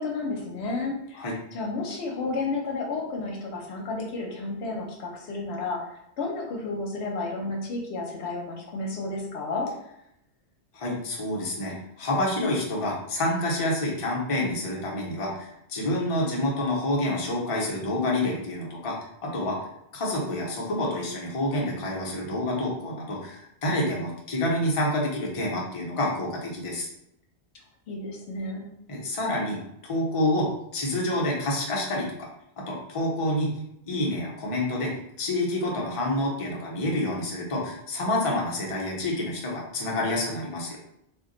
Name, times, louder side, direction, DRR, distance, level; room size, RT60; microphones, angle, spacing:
voice 1, 0.0-1.2 1.5-9.7 27.9-28.7, left 3 dB, 75° left, 0 dB, 0.9 m, -32 dB
voice 2, 10.7-18.9 19.2-19.6 19.9-26.9 28.9-30.5 30.7-32.3 32.6-33.5 33.9-34.9 35.2-40.8, left 1 dB, 35° left, -3 dB, 0.6 m, -28 dB
2.5 x 2.2 x 3.7 m, 0.78 s
omnidirectional pair, 1.1 m